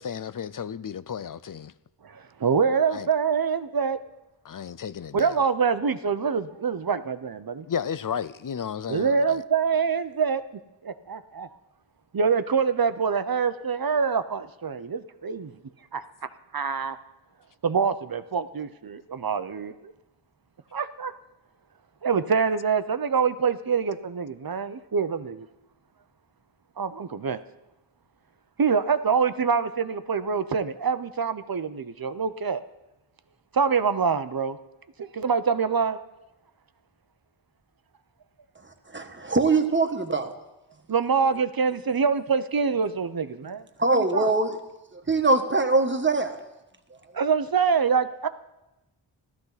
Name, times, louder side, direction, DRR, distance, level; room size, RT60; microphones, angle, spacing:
voice 1, 0.0-1.7 2.9-3.1 4.4-5.5 7.7-9.4, left 7 dB, 45° left, 0.5 m, -33 dB
voice 2, 2.0-4.0 5.1-7.7 8.9-10.4 10.8-11.5 12.1-15.5 15.9-16.0 16.5-17.0 17.6-19.9 20.7-21.1 22.0-25.5 26.8-27.4 28.6-32.6 33.5-34.6 35.0-36.0 40.9-43.6 43.9-44.3 47.1-48.3, right 6 dB, 50° right, 0.8 m, -25 dB
voice 3, 38.6-40.3 43.8-44.6 44.9-46.4, right 3 dB, 25° right, 1.3 m, -23 dB
16.0 x 13.0 x 4.1 m
wide cardioid pair, 70°, 47 cm